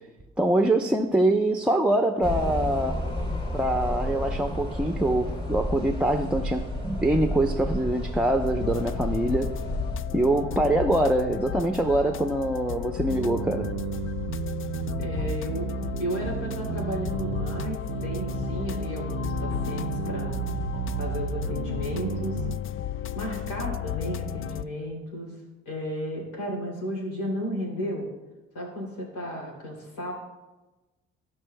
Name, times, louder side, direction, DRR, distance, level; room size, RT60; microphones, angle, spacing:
voice 1, 0.4-3.1 3.5-9.6 10.1-13.7, right 1 dB, 5° right, 0.7 m, -24 dB
sound 1, 2.2-10.0, equal, 15° left, 2.5 m, -31 dB
sound 2, 8.5-24.6, left 10 dB, 45° left, 0.4 m, -34 dB
sound 3, 13.1-22.6, right 11 dB, 75° right, 0.5 m, -33 dB
voice 2, 15.0-15.7 16.0-20.4 21.0-22.4 23.1-25.4 25.6-28.1 28.5-30.1, equal, 90° left, 2.9 m, -33 dB
16.0 x 5.4 x 2.2 m
supercardioid pair, 65°, 29 cm